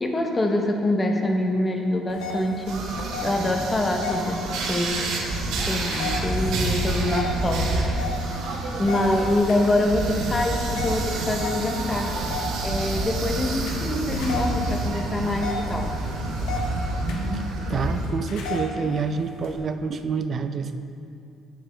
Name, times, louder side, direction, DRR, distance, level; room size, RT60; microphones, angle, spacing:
voice 1, 0.0-2.9 3.2-5.1 5.7-7.8 8.8-12.2 12.6-15.9, left 1 dB, 15° left, 3 dB, 0.7 m, -25 dB
sound 1, 2.1-19.6, left 3 dB, 90° left, 1.0 m, -36 dB
sound 2, 2.7-18.1, right 2 dB, 80° right, 1.1 m, -28 dB
voice 2, 17.7-20.8, right 5 dB, 35° right, 9 dB, 0.3 m, -27 dB
8.2 x 7.8 x 3.3 m, 2.5 s
cardioid pair, 165°, 0 cm